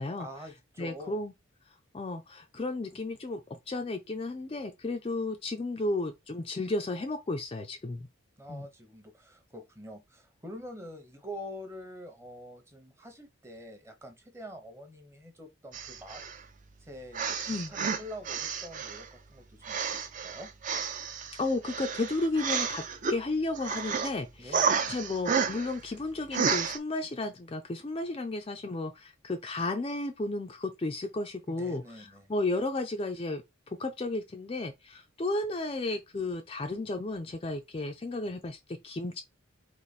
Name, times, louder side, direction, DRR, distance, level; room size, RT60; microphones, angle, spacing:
voice 1, 0.2-1.2 8.4-16.2 16.8-20.5 24.4-24.9 31.5-32.3, equal, 15° right, 0.8 m, -46 dB
voice 2, 0.8-1.3 1.9-8.1 8.5-8.7 17.5-17.7 21.3-39.2, left 2 dB, 25° left, 0.4 m, -33 dB
sound 1, 15.7-16.4 17.1-19.1 19.6-23.2 23.5-24.1 24.5-25.8 26.3-26.8, right 6 dB, 35° right, 0.5 m, -31 dB
4.0 x 2.6 x 4.1 m
head